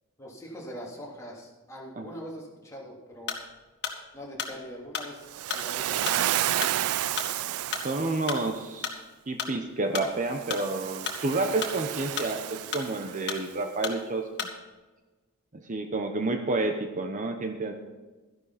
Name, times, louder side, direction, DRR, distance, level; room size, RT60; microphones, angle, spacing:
voice 1, 0.2-3.4 4.1-5.3 5.5-6.8, equal, 15° left, -3 dB, 3.1 m, -42 dB
sound 1, 3.2-3.5 3.8-9.0 9.4-10.7 10.9-12.5 12.7-13.5 13.8-14.0 14.4-14.6, left 6 dB, 55° left, 1.8 m, -34 dB
Waves surf, 5.3-8.5 10.3-13.4, right 13 dB, 75° right, 0.3 m, -31 dB
voice 2, 7.8-9.0 9.3-14.5 15.7-17.7, right 2 dB, 35° right, 5 dB, 0.9 m, -30 dB
13.5 x 11.0 x 4.2 m, 1.3 s
head